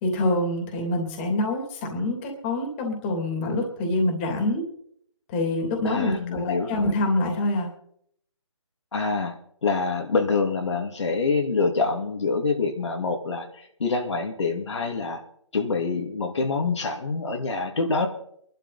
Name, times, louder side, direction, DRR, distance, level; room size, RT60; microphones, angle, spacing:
voice 1, 0.0-4.6 5.3-7.7, left 1 dB, 20° left, 4 dB, 2.8 m, -26 dB
voice 2, 5.8-6.9 8.9-15.2 15.5-18.1, left 4 dB, 65° left, 3 dB, 2.4 m, -26 dB
23.0 x 12.0 x 4.2 m, 0.69 s
hypercardioid pair, 160°, 16 cm